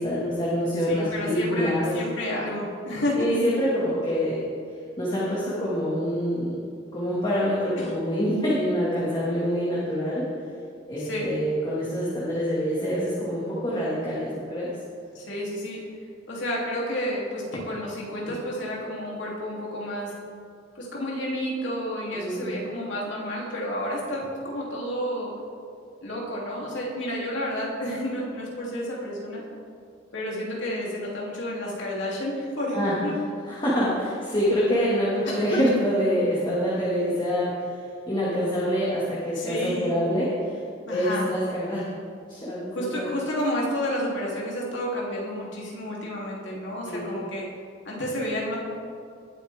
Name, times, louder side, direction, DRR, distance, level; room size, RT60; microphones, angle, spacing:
voice 1, 0.0-1.9 3.2-4.4 5.0-6.6 6.9-10.3 10.9-14.7 22.1-22.5 32.7-33.0 33.5-37.7 38.1-40.6 40.9-41.8 42.3-43.1 46.8-47.1, equal, 25° left, -8 dB, 2.1 m, -26 dB
voice 2, 0.9-3.3 7.8-7.9 11.0-11.3 15.1-15.8 16.3-20.1 20.7-25.3 26.0-29.4 30.1-33.1 35.2-35.6 39.4-39.9 40.9-41.3 42.7-47.5 47.8-48.6, equal, 65° left, -4 dB, 3.0 m, -30 dB
19.0 x 8.6 x 3.6 m, 2.3 s
head